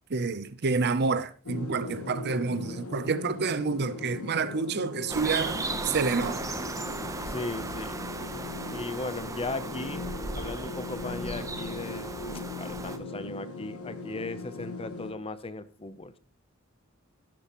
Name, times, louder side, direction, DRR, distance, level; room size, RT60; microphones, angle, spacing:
voice 1, 0.1-6.5, right 4 dB, 50° right, 0.6 m, -28 dB
sound 1, 1.5-15.1, left 3 dB, 90° left, 1.3 m, -39 dB
sound 2, 5.1-13.0, right 2 dB, 15° right, 0.8 m, -36 dB
voice 2, 7.3-8.0 8.7-10.1 10.4-12.1 12.6-16.2, left 3 dB, 25° left, 0.6 m, -37 dB
12.0 x 11.5 x 3.0 m
head